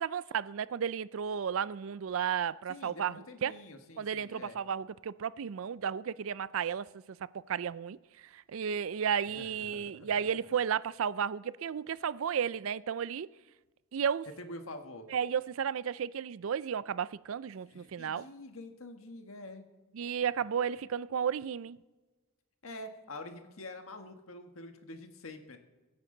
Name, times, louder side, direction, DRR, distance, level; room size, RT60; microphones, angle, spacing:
voice 1, 0.0-3.6 4.0-7.2 7.5-13.3 13.9-14.3 15.1-18.3 19.9-21.8, right 7 dB, 70° right, 0.4 m, -33 dB
voice 2, 2.7-4.6 9.3-10.1 14.4-15.1 17.7-19.6 22.6-25.6, left 2 dB, 75° left, 1.6 m, -46 dB
24.0 x 9.8 x 3.9 m
head